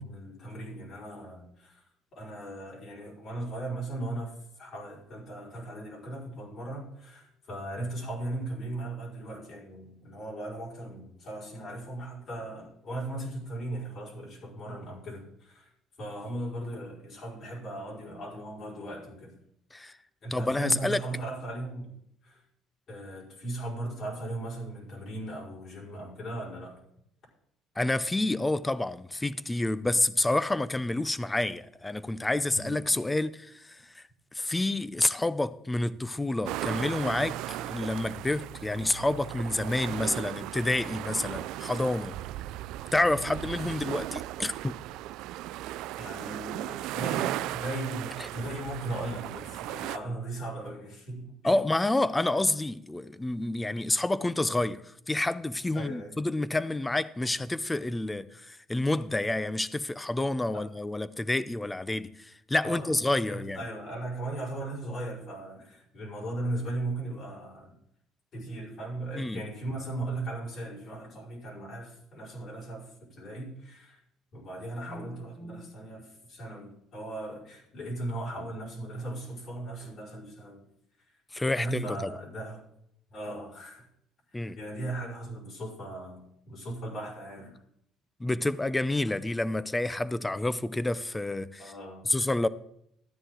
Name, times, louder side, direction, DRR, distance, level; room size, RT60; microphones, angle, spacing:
voice 1, 0.0-1.8 2.1-15.7 16.0-19.3 19.8-21.9 22.2-22.4 22.9-26.8 32.5-32.7 46.0-51.6 55.7-56.2 60.5-60.7 62.6-63.0 63.3-67.7 68.3-74.0 74.3-80.7 81.6-82.6 83.1-83.9 84.3-87.6 91.6-92.2, right 1 dB, 55° left, 5.2 m, -38 dB
voice 2, 20.3-21.0 27.8-34.0 34.3-42.2 42.9-44.8 51.4-63.6 69.2-69.4 81.3-82.1 84.3-84.6 88.2-91.7 92.0-92.5, left 2 dB, 15° left, 0.6 m, -29 dB
sound 1, 36.5-50.0, right 15 dB, 80° right, 0.3 m, -36 dB
12.5 x 9.9 x 3.8 m
supercardioid pair, 85°, 0 cm